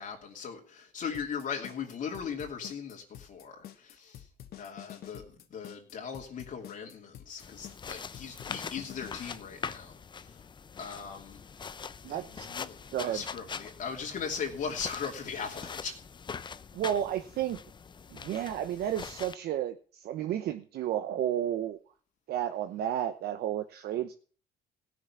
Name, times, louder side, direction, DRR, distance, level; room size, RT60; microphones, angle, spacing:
voice 1, 0.0-4.3 4.5-10.4 10.8-11.4 12.1-15.9, left 6 dB, 50° left, 2.8 m, -39 dB
sound 1, 1.1-9.1, left 11 dB, 70° left, 1.3 m, -48 dB
sound 2, 7.4-19.4, left 6 dB, 25° left, 0.6 m, -43 dB
voice 2, 12.0-12.5 12.9-13.2 16.7-17.6 18.1-21.8 22.3-24.1, right 11 dB, 70° right, 0.9 m, -32 dB
16.5 x 6.4 x 7.3 m
cardioid pair, 110°, 17 cm